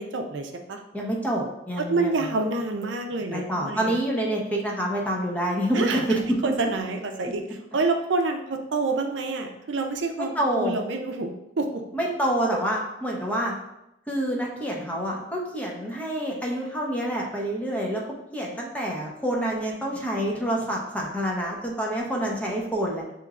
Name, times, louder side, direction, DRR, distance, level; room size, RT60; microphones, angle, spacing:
voice 1, 0.0-0.8 1.8-3.9 5.7-6.0 6.4-11.8, right 3 dB, 75° right, 4 dB, 0.5 m, -28 dB
voice 2, 0.9-2.4 3.1-6.2 10.3-10.8 11.9-13.5 14.1-18.0 18.3-23.0, right 1 dB, 10° left, -2 dB, 0.7 m, -27 dB
6.8 x 3.0 x 2.4 m, 0.87 s
head